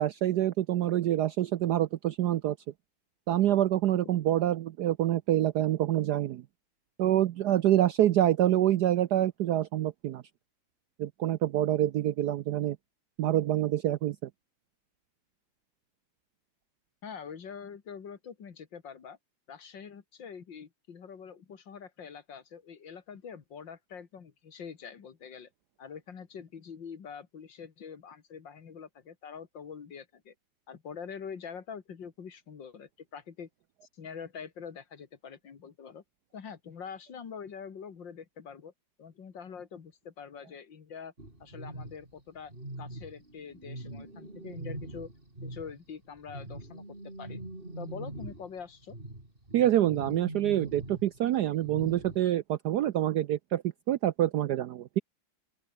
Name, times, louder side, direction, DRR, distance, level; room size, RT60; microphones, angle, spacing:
voice 1, 0.0-2.6 3.3-6.4 7.0-10.2 11.0-12.8 13.2-14.3 49.5-55.0, right 12 dB, 75° right, 0.9 m, -26 dB
voice 2, 17.0-19.2 19.5-25.5 25.8-30.3 30.7-33.5 33.9-36.0 36.3-38.7 39.0-41.1 41.4-42.5 42.8-45.1 45.4-47.4 47.8-49.0, left 6 dB, 60° left, 2.6 m, -45 dB
sound 1, 41.2-45.8 46.2-52.2, right 1 dB, 25° right, 5.5 m, -43 dB
open air
omnidirectional pair, 2.4 m